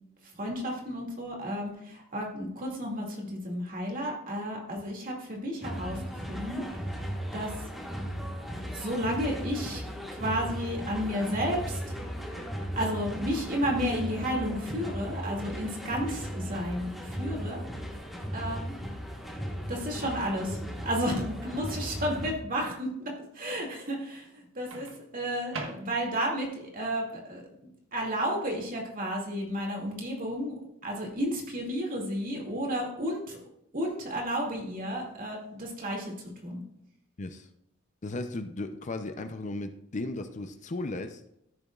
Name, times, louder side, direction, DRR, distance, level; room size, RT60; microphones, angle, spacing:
voice 1, 0.4-6.7 7.3-7.5 8.6-9.8 10.2-11.8 12.8-17.6 18.3-18.8 19.7-24.9 25.1-27.4 27.9-30.5 30.8-33.4 33.7-36.1 36.4-36.6, equal, 45° right, -1 dB, 2.3 m, -32 dB
sound 1, 5.6-22.3, equal, ahead, 1.5 m, -37 dB
Microwave oven, 16.0-16.7 18.7-18.9 24.7-26.3, right 3 dB, 80° right, 1.4 m, -43 dB
voice 2, 38.0-41.2, left 2 dB, 35° left, 8 dB, 0.5 m, -35 dB
14.0 x 7.0 x 2.4 m, 0.78 s
head